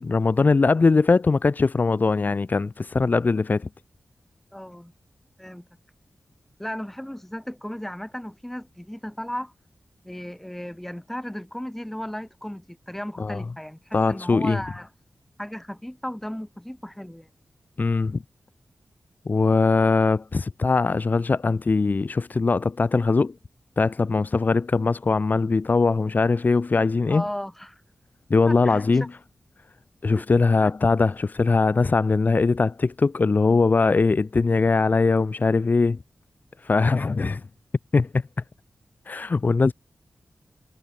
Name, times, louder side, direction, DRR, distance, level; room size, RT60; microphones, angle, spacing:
voice 1, 0.0-3.7 13.2-13.4 13.9-14.6 17.8-18.2 19.2-23.3 23.8-27.2 28.3-29.1 30.0-36.0 36.6-37.4 37.9-38.2 39.1-39.7, left 4 dB, 45° left, 3.2 m, -21 dB
voice 2, 4.5-4.9 5.4-5.7 6.6-9.5 10.0-14.9 15.4-17.3 27.1-27.8 28.5-28.8 30.1-30.3 30.6-30.7, equal, 5° left, 5.8 m, -35 dB
wide cardioid pair, 85°, 4 cm